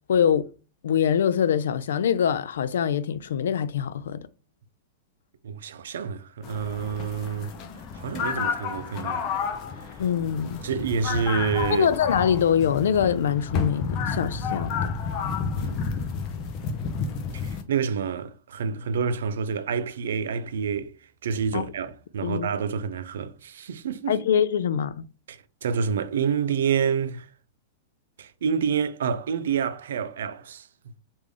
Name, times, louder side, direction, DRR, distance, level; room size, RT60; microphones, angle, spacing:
voice 1, 0.1-0.5 0.8-4.2 10.0-10.6 11.7-14.8 21.5-21.6 22.2-22.5 24.1-25.1, left 8 dB, 90° left, 0.3 m, -24 dB
voice 2, 5.4-7.5 7.9-9.3 10.6-11.9 15.6-16.0 17.3-20.9 21.2-24.2 25.3-27.3 28.2-30.7, right 6 dB, 85° right, 0.4 m, -28 dB
sound 1, 6.4-17.6, left 6 dB, 25° left, 0.5 m, -31 dB
3.4 x 2.6 x 3.4 m
supercardioid pair, 175°, 0 cm